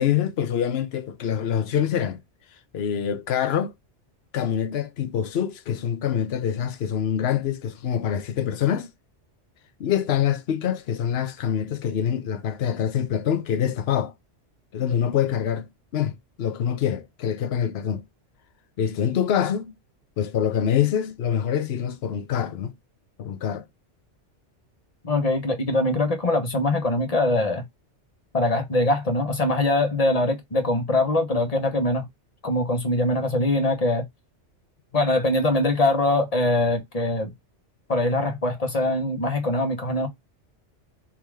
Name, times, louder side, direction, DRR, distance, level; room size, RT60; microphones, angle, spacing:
voice 1, 0.0-2.2 2.7-3.7 4.3-8.9 9.8-14.1 14.7-15.7 15.9-18.0 18.8-19.7 20.2-22.7 23.2-23.6, left 9 dB, 60° left, 1.0 m, -25 dB
voice 2, 25.0-27.6 28.3-32.1 32.4-34.0 34.9-37.3 37.9-40.1, left 2 dB, 35° left, 1.2 m, -23 dB
3.7 x 2.9 x 4.6 m
omnidirectional pair, 1.2 m